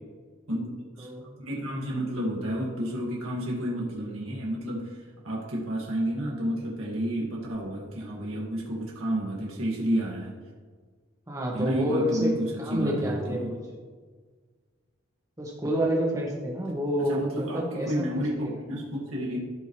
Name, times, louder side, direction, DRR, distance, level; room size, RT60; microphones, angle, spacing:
voice 1, 0.5-1.1 1.4-4.9 5.2-10.3 11.5-13.5 17.1-19.4, equal, 90° right, -4 dB, 2.0 m, -30 dB
voice 2, 11.3-13.6 15.4-18.0 18.3-18.5, equal, 15° right, -2 dB, 1.7 m, -28 dB
16.0 x 5.4 x 3.1 m, 1.5 s
head